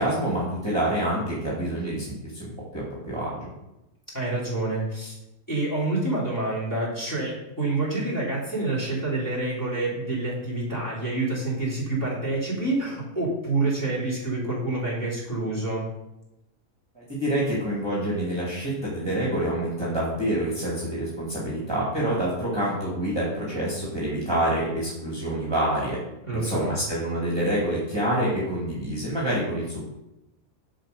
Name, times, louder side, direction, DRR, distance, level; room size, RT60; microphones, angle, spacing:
voice 1, 0.0-3.5 16.9-26.0 26.3-29.9, right 1 dB, 15° right, -7 dB, 2.4 m, -27 dB
voice 2, 4.1-5.1 5.5-15.9 26.2-26.7, right 2 dB, 10° left, -8 dB, 3.3 m, -27 dB
7.6 x 5.2 x 6.7 m, 0.91 s
omnidirectional pair, 1.6 m